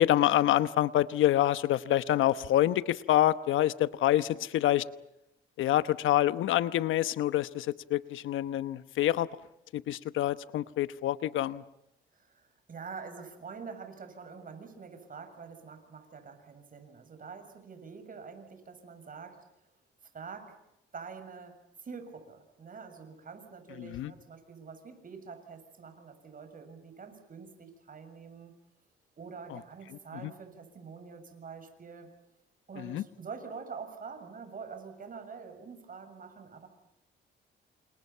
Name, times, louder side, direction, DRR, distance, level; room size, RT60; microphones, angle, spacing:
voice 1, 0.0-4.9 5.6-9.3 9.7-11.6 23.8-24.1 29.5-29.6 30.2-30.3 32.8-33.0, left 13 dB, 80° left, 14 dB, 1.1 m, -27 dB
voice 2, 12.1-19.4 20.1-20.6 20.9-28.5 29.2-32.1 32.7-36.7, right 5 dB, 45° right, 7 dB, 7.1 m, -46 dB
29.5 x 28.0 x 5.7 m, 0.86 s
cardioid pair, 90°, 20 cm